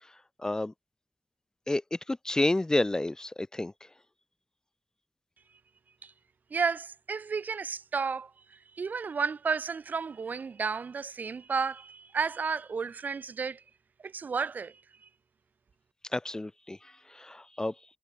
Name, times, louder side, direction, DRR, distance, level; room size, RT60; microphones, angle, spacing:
voice 1, 0.4-0.7 1.7-1.8 2.1-3.7 16.1-16.8 17.2-17.7, left 2 dB, 20° left, 0.6 m, -29 dB
voice 2, 6.5-13.6 14.0-14.8, right 5 dB, 75° right, 1.9 m, -32 dB
wide cardioid pair, 80°, 3 cm